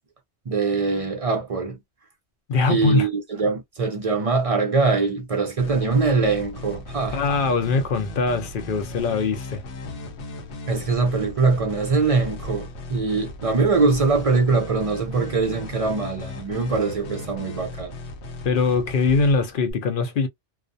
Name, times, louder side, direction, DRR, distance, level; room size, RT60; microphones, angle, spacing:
voice 1, 0.5-1.8 2.7-7.2 10.7-17.9, right 4 dB, 45° right, 0.5 m, -22 dB
voice 2, 2.5-3.1 7.1-9.6 18.4-20.3, left 4 dB, 60° left, 0.6 m, -22 dB
sound 1, 5.6-19.7, left 2 dB, 90° left, 0.9 m, -37 dB
2.3 x 2.1 x 2.6 m
omnidirectional pair, 1.1 m